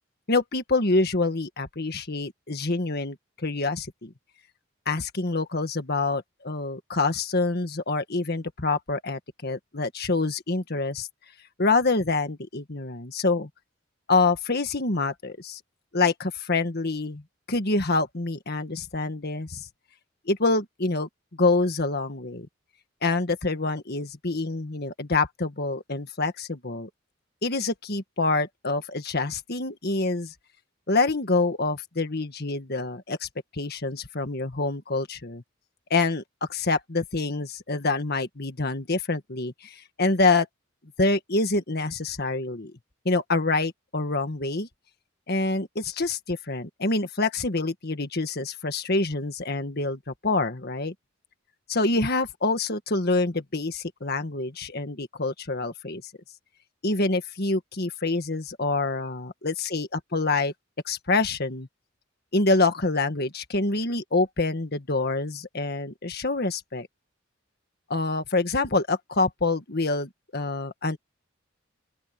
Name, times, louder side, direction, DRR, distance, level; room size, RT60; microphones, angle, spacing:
voice 1, 0.3-3.2 3.4-4.1 4.8-11.1 11.6-13.5 14.1-15.6 15.9-17.2 17.5-19.6 20.3-21.1 21.4-22.5 23.0-26.9 27.4-30.3 30.9-33.3 33.5-35.4 35.9-36.2 36.5-40.5 41.0-42.7 43.0-44.7 45.3-50.9 51.7-56.0 56.8-60.5 60.8-61.7 62.3-66.9 67.9-71.0, left 3 dB, 50° left, 1.7 m, -26 dB
open air
head